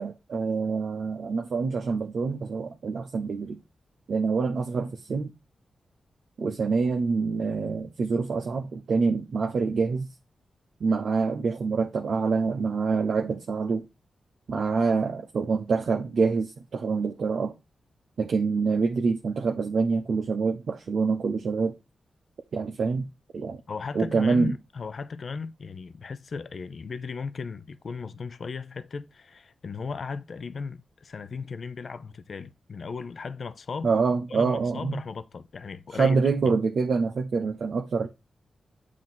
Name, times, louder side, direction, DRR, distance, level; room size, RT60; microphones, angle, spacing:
voice 1, 0.0-3.6 4.1-5.3 6.4-10.1 10.8-13.9 14.5-17.5 18.2-21.7 22.5-23.6 23.9-24.5 33.8-35.0 36.0-38.1, right 4 dB, 70° right, 0.7 m, -26 dB
voice 2, 23.7-33.9 34.3-36.2 36.4-36.6, left 5 dB, 60° left, 0.5 m, -36 dB
7.4 x 2.8 x 5.9 m
cardioid pair, 60°, 0 cm